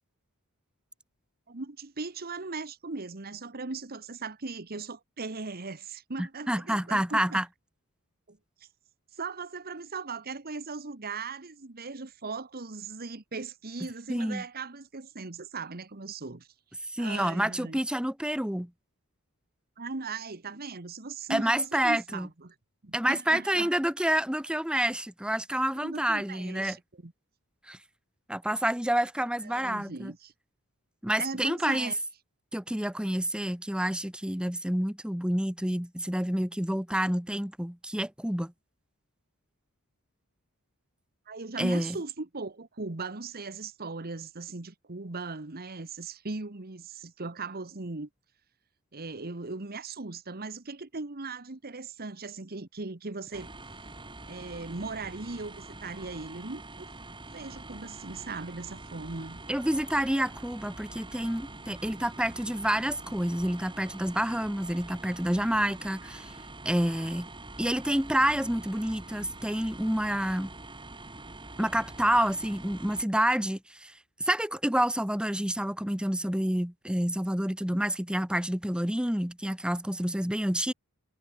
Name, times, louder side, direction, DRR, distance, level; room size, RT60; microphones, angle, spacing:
voice 1, 1.5-7.4 8.3-8.7 9.2-16.5 17.0-17.8 19.8-22.5 22.8-23.7 25.8-27.1 29.4-30.3 31.2-32.0 41.3-48.1 48.9-53.5 54.3-56.9 57.3-59.4, right 3 dB, 45° right, 1.3 m, -38 dB
voice 2, 6.2-7.4 14.1-14.4 16.9-18.7 21.3-22.3 22.9-26.8 27.7-27.8 28.3-30.1 31.0-31.9 32.5-38.5 41.6-42.0 59.5-66.4 66.6-67.3 67.6-70.5 71.6-73.9 74.2-80.7, right 1 dB, 5° right, 1.3 m, -28 dB
sound 1, 53.3-73.0, right 2 dB, 20° right, 7.0 m, -45 dB
head